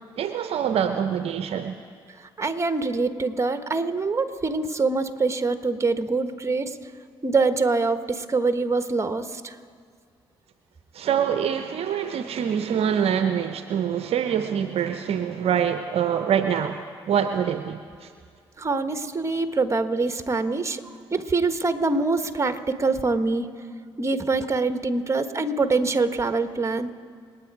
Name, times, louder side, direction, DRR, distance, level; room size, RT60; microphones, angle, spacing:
voice 1, 0.2-1.8 10.9-18.1, right 8 dB, 60° right, 9 dB, 0.7 m, -25 dB
voice 2, 2.1-6.9 7.2-9.6 18.6-23.5 24.0-26.9, right 3 dB, 25° right, 9 dB, 1.3 m, -24 dB
27.5 x 9.5 x 4.8 m, 2.1 s
hypercardioid pair, 50°, 12 cm